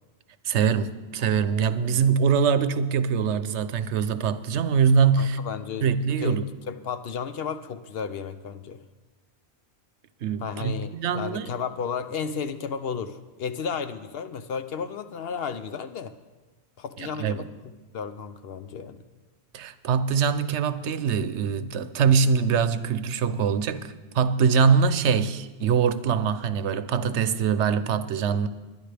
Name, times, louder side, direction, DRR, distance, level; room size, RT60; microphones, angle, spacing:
voice 1, 0.4-5.4 5.8-6.4 10.2-11.5 17.0-17.4 19.5-28.5, right 6 dB, 90° right, 1.0 m, -23 dB
voice 2, 5.2-5.9 6.2-6.4 6.7-8.8 10.4-16.1 16.8-17.5 17.9-19.0, left 6 dB, 65° left, 0.9 m, -33 dB
21.0 x 11.0 x 3.4 m
omnidirectional pair, 1.1 m